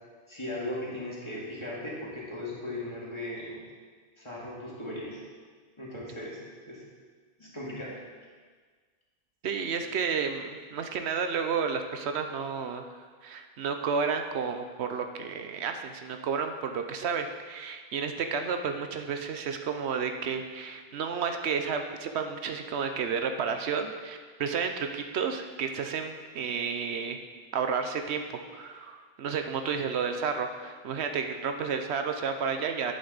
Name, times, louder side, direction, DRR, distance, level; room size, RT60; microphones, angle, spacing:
voice 1, 0.3-3.6 4.2-5.2 5.8-6.4 6.7-6.8 7.4-8.0, left 1 dB, 25° left, -6 dB, 2.4 m, -37 dB
voice 2, 9.4-12.8 13.2-27.2 27.5-32.9, right 6 dB, 85° right, 6 dB, 1.0 m, -31 dB
9.8 x 8.0 x 4.0 m, 1.5 s
omnidirectional pair, 1.1 m